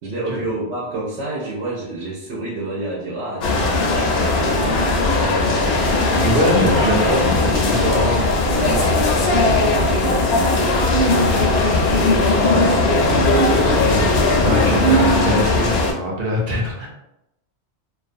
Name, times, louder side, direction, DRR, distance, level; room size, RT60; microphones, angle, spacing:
voice 1, 0.0-5.8 8.6-14.2, right 2 dB, 90° right, -6 dB, 1.0 m, -29 dB
sound 1, 3.4-15.9, left 2 dB, 70° left, 0.8 m, -18 dB
Guitar, 4.3-13.7, left 2 dB, 10° right, 0.5 m, -34 dB
voice 2, 6.1-8.9 12.5-12.7 14.4-16.9, equal, 60° right, -2 dB, 0.8 m, -23 dB
2.4 x 2.2 x 2.5 m, 0.88 s
omnidirectional pair, 1.1 m